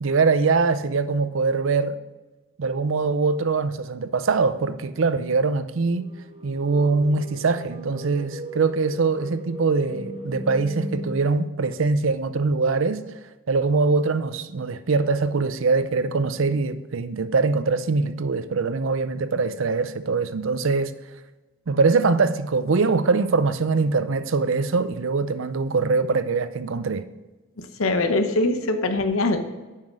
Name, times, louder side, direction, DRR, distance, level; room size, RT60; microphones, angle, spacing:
voice 1, 0.0-2.0 2.6-6.1 6.4-13.0 13.5-20.9 21.7-27.0, right 4 dB, 70° right, 0.5 m, -23 dB
sound 1, 5.8-11.2, equal, 30° right, 1.0 m, -37 dB
voice 2, 27.6-29.5, left 2 dB, 90° left, 1.0 m, -23 dB
9.0 x 5.8 x 6.2 m
head